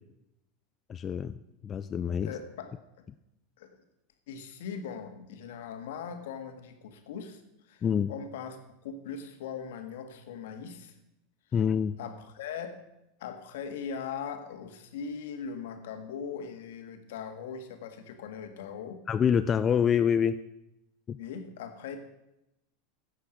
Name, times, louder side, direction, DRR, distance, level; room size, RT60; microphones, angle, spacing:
voice 1, 0.9-1.4 1.6-2.3 7.8-8.1 11.5-12.0 19.1-20.4 21.1-21.2, left 7 dB, 30° left, 11 dB, 0.4 m, -26 dB
voice 2, 2.2-2.7 3.6-3.7 4.3-10.9 12.0-12.8 13.2-19.0 21.2-22.0, left 6 dB, 75° left, 6 dB, 1.6 m, -40 dB
13.5 x 8.4 x 5.1 m, 0.87 s
hypercardioid pair, 95°, 0 cm